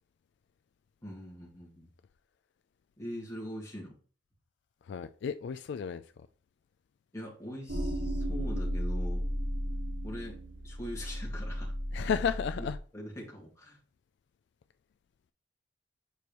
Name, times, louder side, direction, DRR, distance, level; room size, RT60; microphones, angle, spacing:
voice 1, 1.0-1.9 3.0-4.0 7.1-9.3 10.0-12.1 12.6-12.7 12.9-13.8, equal, 15° left, 2.1 m, -43 dB
voice 2, 4.8-6.3 11.9-12.8, left 7 dB, 60° left, 0.3 m, -33 dB
sound 1, 7.7-12.8, equal, 85° right, 3.1 m, -34 dB
6.8 x 4.6 x 3.0 m
head